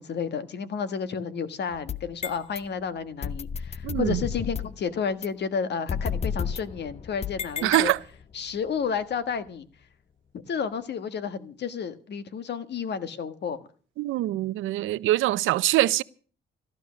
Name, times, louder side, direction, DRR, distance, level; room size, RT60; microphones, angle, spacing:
voice 1, 0.0-7.9 8.3-9.7 10.3-13.7, left 6 dB, 60° left, 1.4 m, -31 dB
sound 1, 1.7-2.6 3.2-4.8 5.2-5.3 5.9-8.3, left 6 dB, 35° left, 0.6 m, -32 dB
voice 2, 3.8-4.2 7.6-8.0 14.0-16.0, right 16 dB, 90° right, 0.6 m, -24 dB
15.0 x 12.0 x 6.3 m
cardioid pair, 90°, 20 cm